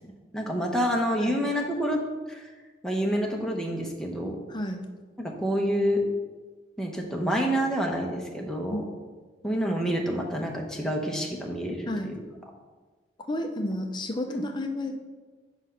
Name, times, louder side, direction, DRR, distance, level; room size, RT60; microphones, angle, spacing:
voice 1, 0.3-2.0 2.3-2.4 2.8-4.4 5.2-6.0 6.8-8.8 9.4-12.1 14.3-14.4, equal, 5° left, 0 dB, 0.9 m, -28 dB
voice 2, 4.5-4.8 8.7-8.9 11.9-12.1 13.3-15.0, left 1 dB, 25° left, 5 dB, 0.6 m, -31 dB
6.2 x 4.9 x 5.7 m, 1.3 s
head